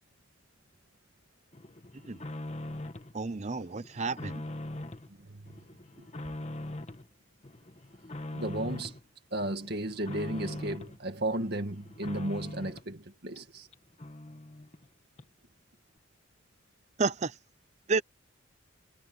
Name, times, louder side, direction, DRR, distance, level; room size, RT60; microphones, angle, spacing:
sound 1, 1.5-3.1 3.5-5.1 5.5-7.1 7.4-9.0 9.4-11.0 11.4-12.9 13.3-13.4 13.7-13.8 14.0-14.9 15.2-15.3, left 1 dB, 30° left, 1.4 m, -42 dB
voice 1, 3.1-4.4 17.0-17.4 17.9-18.0, right 4 dB, 35° right, 0.6 m, -31 dB
voice 2, 5.2-5.6 6.0-6.1 8.3-9.0 9.3-13.7, right 1 dB, 50° right, 2.0 m, -34 dB
head